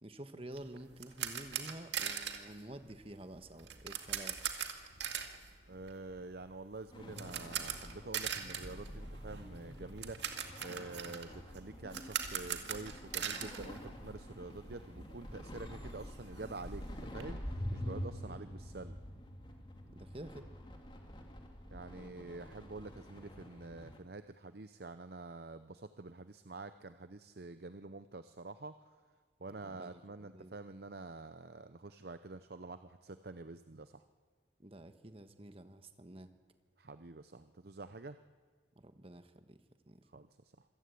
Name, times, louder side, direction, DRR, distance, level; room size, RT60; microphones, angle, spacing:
voice 1, 0.0-4.4 18.2-18.5 19.9-20.5 29.5-30.5 34.6-36.3 38.7-39.6 39.9-40.0, right 1 dB, 30° right, 9 dB, 1.3 m, -50 dB
sound 1, 0.5-14.5 14.8-14.9 15.3-15.4 15.7-17.2, right 8 dB, 70° right, 2.1 m, -42 dB
voice 2, 5.7-10.2 10.6-16.9 17.1-19.0 21.7-28.7 29.4-34.0 36.8-38.2 40.1-40.5, right 3 dB, 55° right, 11 dB, 0.7 m, -47 dB
sound 2, 6.9-24.0, equal, 25° left, 2.3 m, -47 dB
26.5 x 17.0 x 8.5 m, 1.5 s
head